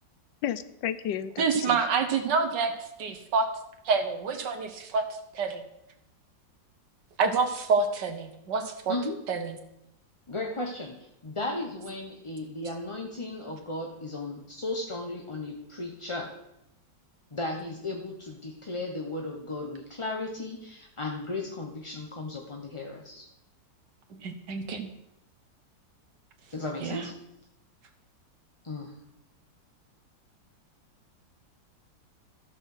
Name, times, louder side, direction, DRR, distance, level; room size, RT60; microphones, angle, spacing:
voice 1, 0.4-1.8, left 10 dB, 85° left, 13 dB, 1.4 m, -32 dB
voice 2, 1.4-3.5 3.9-5.0 5.3-5.6 7.2-9.0 9.3-9.6 24.2-24.9 26.8-27.1, right 5 dB, 70° right, 6 dB, 1.9 m, -27 dB
voice 3, 8.9-9.2 10.3-16.4 17.3-23.2 26.5-27.1 28.6-28.9, left 2 dB, 25° left, 1 dB, 0.8 m, -35 dB
14.0 x 6.0 x 6.5 m, 0.83 s
omnidirectional pair, 1.9 m